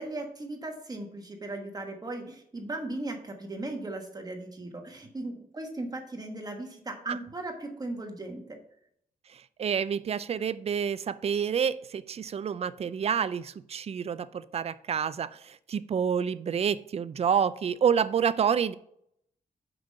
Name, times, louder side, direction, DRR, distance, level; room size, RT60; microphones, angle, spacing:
voice 1, 0.0-8.6, right 2 dB, 25° right, 1.2 m, -37 dB
voice 2, 9.3-18.7, right 7 dB, 45° right, 0.4 m, -28 dB
6.0 x 4.9 x 6.4 m
wide cardioid pair, 115°, 15 cm